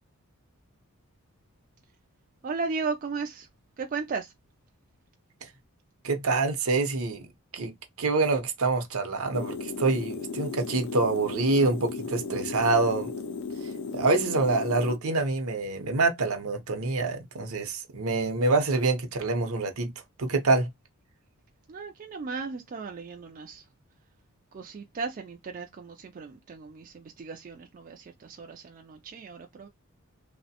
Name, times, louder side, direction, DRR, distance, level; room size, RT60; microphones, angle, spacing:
voice 1, 2.4-3.5 3.8-4.3 21.7-23.6 24.5-29.7, right 4 dB, 40° right, 0.3 m, -36 dB
voice 2, 6.0-7.2 7.5-7.7 8.0-13.1 13.6-19.9 20.2-20.7, right 3 dB, 75° right, 0.7 m, -26 dB
sound 1, 9.3-15.0, left 4 dB, 55° left, 0.3 m, -35 dB
2.9 x 2.1 x 2.8 m
head